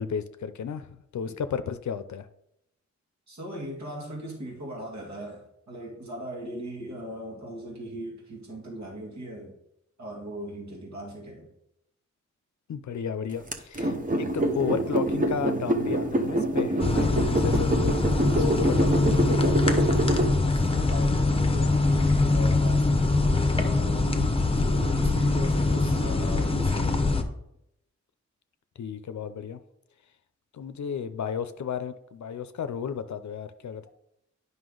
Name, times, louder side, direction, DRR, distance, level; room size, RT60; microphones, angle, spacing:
voice 1, 0.0-2.3 12.7-18.0 18.4-20.0 28.8-29.6 30.5-33.9, left 7 dB, 70° left, 11 dB, 0.5 m, -33 dB
voice 2, 3.3-9.6 10.0-11.5 18.3-18.6 20.3-27.0, equal, 70° right, -2 dB, 2.2 m, -39 dB
sound 1, 13.5-20.3, right 1 dB, 30° right, 0.8 m, -26 dB
sound 2, 16.8-27.2, left 3 dB, 20° left, 0.8 m, -23 dB
9.6 x 5.4 x 3.9 m, 0.79 s
wide cardioid pair, 100°, 29 cm